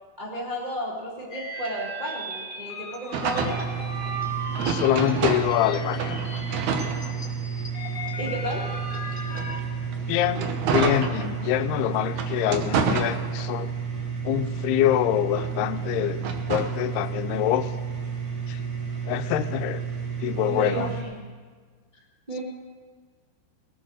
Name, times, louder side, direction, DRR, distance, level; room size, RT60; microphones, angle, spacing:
voice 1, 0.2-3.6 8.2-8.7 20.4-21.3 22.3-22.4, right 1 dB, 30° right, -5 dB, 0.9 m, -33 dB
sound 1, 1.3-9.6, right 1 dB, 30° left, 0.8 m, -37 dB
sound 2, 3.1-5.7 6.0-7.6 8.2-11.6 12.1-13.7 14.1-16.8, right 5 dB, 90° right, 1.6 m, -30 dB
sound 3, 3.3-21.0, right 6 dB, 55° right, 1.7 m, -32 dB
voice 2, 4.7-6.2 10.1-13.7 14.2-17.7 18.5-18.6 19.1-19.8 20.2-20.9, left 12 dB, 80° left, 9 dB, 2.4 m, -25 dB
20.5 x 7.8 x 6.3 m, 1.5 s
omnidirectional pair, 5.0 m